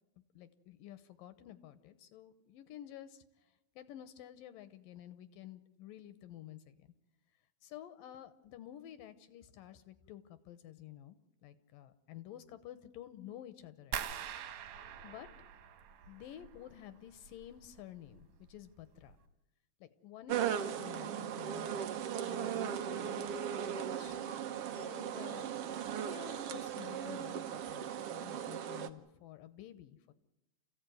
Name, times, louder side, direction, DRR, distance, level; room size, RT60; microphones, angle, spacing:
voice 1, 0.3-6.9 7.6-14.3 15.0-15.3 16.1-19.2 19.8-23.3 23.7-24.2 24.7-25.5 26.0-30.1, left 12 dB, 75° left, 12 dB, 2.5 m, -51 dB
sound 1, 13.9-16.8 17.1-17.8 18.1-18.6 19.0-19.1, right 9 dB, 65° right, 2.4 m, -44 dB
sound 2, 20.3-28.9, right 9 dB, 80° right, 1.3 m, -38 dB
28.5 x 15.5 x 9.3 m, 0.95 s
omnidirectional pair, 4.3 m